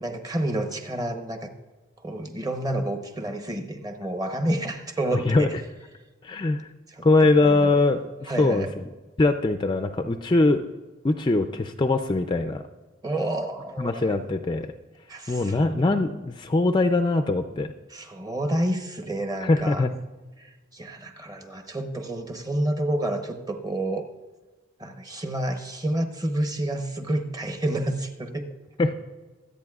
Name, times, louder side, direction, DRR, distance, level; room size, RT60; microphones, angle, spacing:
voice 1, 0.0-1.5 2.0-5.5 6.9-7.7 8.3-8.7 13.0-14.3 15.1-15.9 17.9-19.9 20.4-24.1 24.8-28.5, right 1 dB, 20° right, 5 dB, 0.8 m, -29 dB
voice 2, 5.1-5.5 6.2-6.7 7.0-8.8 9.2-10.7 11.0-12.6 13.8-14.7 15.3-17.7 19.4-19.9 28.8-28.9, left 2 dB, 20° left, 7 dB, 0.4 m, -22 dB
24.5 x 8.4 x 2.4 m, 1.2 s
head